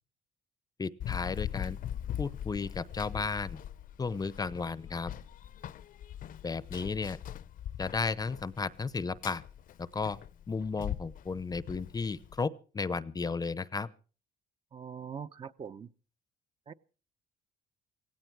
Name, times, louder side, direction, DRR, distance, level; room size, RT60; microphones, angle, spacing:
voice 1, 0.8-1.8 2.2-3.6 4.0-5.1 6.4-7.2 7.8-9.4 9.8-10.2 10.5-13.9, left 4 dB, 20° left, 0.7 m, -34 dB
Run, 1.0-12.4, left 10 dB, 55° left, 0.8 m, -41 dB
voice 2, 14.7-15.9 16.7-16.8, right 7 dB, 30° right, 0.8 m, -42 dB
17.0 x 16.5 x 4.7 m
cardioid pair, 110°, 17 cm